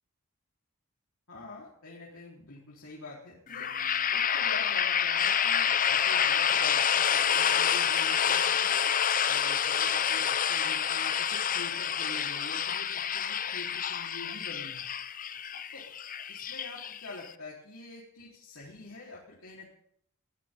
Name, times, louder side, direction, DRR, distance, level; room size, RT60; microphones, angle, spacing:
voice 1, 1.3-3.7 4.1-8.7 9.2-14.8 15.7-15.8 16.3-19.7, left 2 dB, 70° left, -5 dB, 4.3 m, -46 dB
sound 1, 3.5-17.3, left 8 dB, 35° left, 0.7 m, -28 dB
22.0 x 16.5 x 3.9 m, 0.69 s
head